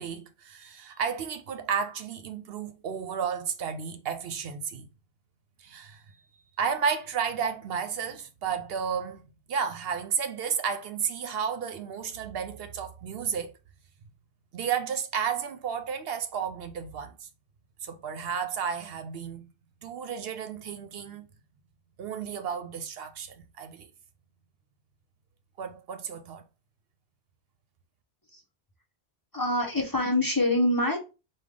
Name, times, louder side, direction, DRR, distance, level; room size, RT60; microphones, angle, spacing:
voice 1, 0.0-4.9 5.6-6.0 6.6-13.5 14.5-17.3 17.8-19.5 19.8-21.3 22.0-23.9 25.6-26.4, right 7 dB, 70° right, 0.8 m, -32 dB
voice 2, 29.3-31.1, left 1 dB, 20° left, 0.8 m, -25 dB
5.0 x 2.2 x 3.6 m
omnidirectional pair, 1.1 m